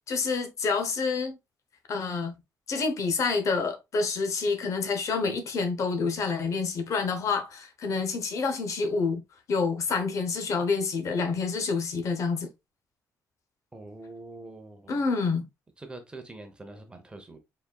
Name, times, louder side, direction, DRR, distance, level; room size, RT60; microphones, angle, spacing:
voice 1, 0.1-1.4 1.9-2.3 2.7-9.2 9.5-12.5 14.9-15.5, left 4 dB, 50° left, 0.9 m, -28 dB
voice 2, 13.7-15.0 15.8-17.4, right 2 dB, 15° right, 0.8 m, -44 dB
4.8 x 4.1 x 2.3 m
cardioid pair, 155°, 7 cm